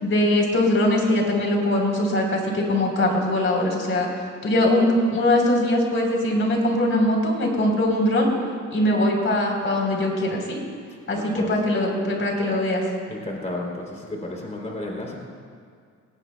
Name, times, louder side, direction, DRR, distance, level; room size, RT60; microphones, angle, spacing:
voice 1, 0.0-4.1 4.4-8.3 8.7-10.6 11.1-12.8, left 1 dB, 40° left, 0 dB, 3.8 m, -21 dB
voice 2, 10.9-11.5 13.1-15.2, left 2 dB, 25° left, -1 dB, 3.0 m, -33 dB
18.5 x 18.5 x 2.2 m, 2.1 s
cardioid pair, 90°, 30 cm